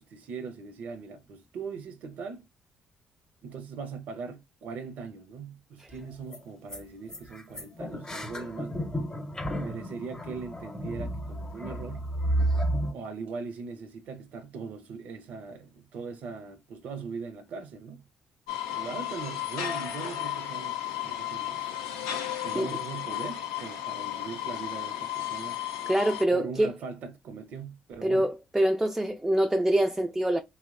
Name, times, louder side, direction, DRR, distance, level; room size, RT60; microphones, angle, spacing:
voice 1, 0.0-2.5 3.4-8.8 9.6-12.1 12.9-18.0 18.7-21.8 22.4-25.6 26.3-28.3, right 5 dB, 65° right, 0.5 m, -40 dB
sound 1, 5.9-6.0 6.3-6.4 6.7-6.8 7.1-12.9, right 1 dB, 20° left, 0.7 m, -32 dB
sound 2, 18.5-26.2, left 11 dB, 85° left, 0.4 m, -34 dB
voice 2, 25.9-26.7 28.0-30.4, right 1 dB, 10° right, 0.3 m, -25 dB
2.7 x 2.1 x 2.4 m
hypercardioid pair, 50°, 3 cm